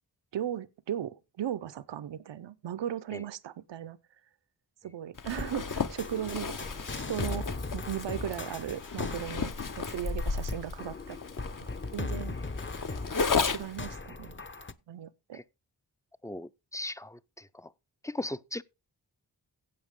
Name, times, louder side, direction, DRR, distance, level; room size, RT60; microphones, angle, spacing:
voice 1, 0.3-4.0 4.8-6.6 6.9-9.5 9.8-11.2 11.9-12.4 13.4-14.3 14.9-15.4, right 10 dB, 75° right, 0.7 m, -37 dB
Zipper (clothing), 5.2-13.9, left 5 dB, 45° left, 1.1 m, -34 dB
sound 1, 5.3-14.7, left 3 dB, 25° left, 0.9 m, -39 dB
voice 2, 16.2-17.7 18.0-18.6, left 1 dB, 5° left, 0.5 m, -38 dB
16.5 x 5.5 x 3.7 m
cardioid pair, 55°, 43 cm